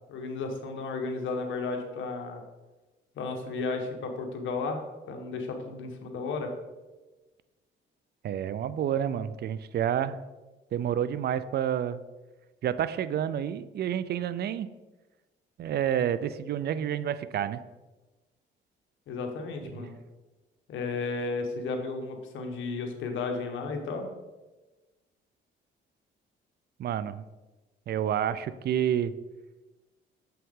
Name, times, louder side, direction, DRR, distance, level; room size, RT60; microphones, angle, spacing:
voice 1, 0.1-2.4 3.2-6.5 19.1-20.0 20.7-24.1, left 3 dB, 75° left, 3 dB, 1.3 m, -33 dB
voice 2, 8.2-10.2 10.7-12.0 12.6-14.7 15.6-17.6 19.6-19.8 26.8-27.3 27.9-29.1, right 9 dB, 55° right, 14 dB, 0.4 m, -29 dB
7.3 x 5.7 x 3.7 m, 1.2 s
cardioid pair, 90°, 20 cm